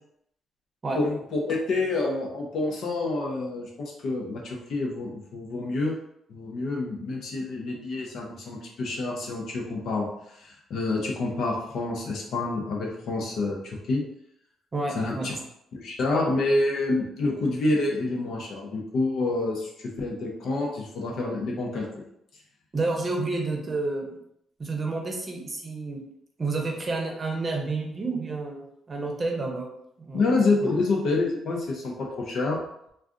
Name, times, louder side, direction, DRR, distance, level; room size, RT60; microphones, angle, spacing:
voice 1, 0.9-5.9 6.3-14.0 14.9-15.3 15.7-21.9 30.1-32.6, left 2 dB, 70° left, -1 dB, 0.8 m, -28 dB
voice 2, 14.7-15.3 22.7-24.2 24.6-26.0 26.4-28.6 28.9-29.7 30.0-30.2 30.6-30.7, right 3 dB, 35° right, 1 dB, 0.7 m, -29 dB
2.4 x 2.4 x 3.7 m, 0.76 s
cardioid pair, 90°, 0 cm